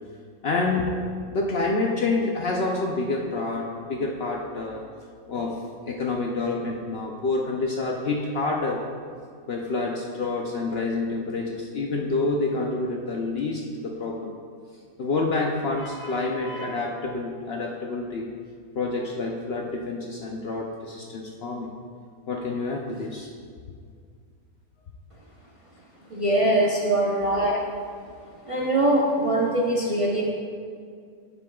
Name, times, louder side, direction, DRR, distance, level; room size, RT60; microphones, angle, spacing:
voice 1, 0.4-1.0 1.3-4.8 5.3-8.8 9.5-14.3 15.0-18.3 18.8-21.7 22.3-23.3 27.3-27.6, left 3 dB, 60° left, 0 dB, 0.7 m, -28 dB
voice 2, 26.1-27.5 28.5-30.2, right 1 dB, 30° right, -4 dB, 0.6 m, -22 dB
9.2 x 7.8 x 2.3 m, 2.1 s
omnidirectional pair, 1.5 m